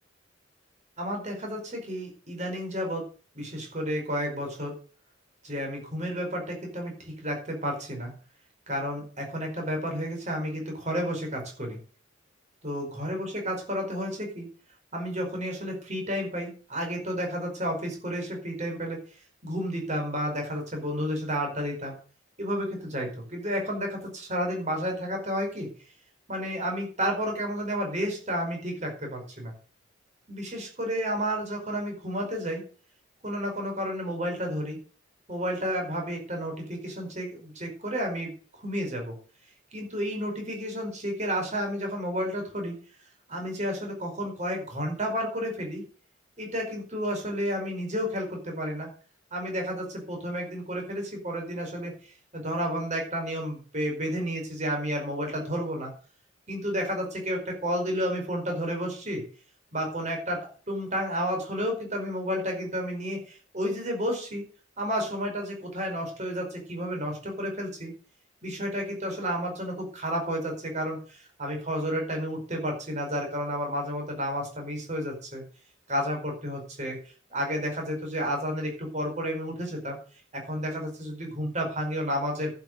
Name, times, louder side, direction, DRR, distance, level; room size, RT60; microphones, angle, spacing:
voice 1, 1.0-3.1 3.3-4.7 5.4-8.1 8.7-11.8 12.6-14.5 14.9-19.0 19.4-21.9 22.4-25.7 26.3-29.5 30.3-32.6 33.2-34.8 35.3-39.1 39.7-42.8 43.3-45.8 46.4-48.9 49.3-55.9 56.5-59.2 59.7-64.4 64.8-67.9 68.4-75.4 75.9-77.0 77.3-80.0 80.3-82.5, equal, 35° right, 2 dB, 4.8 m, -31 dB
11.0 x 7.0 x 8.0 m, 0.41 s
head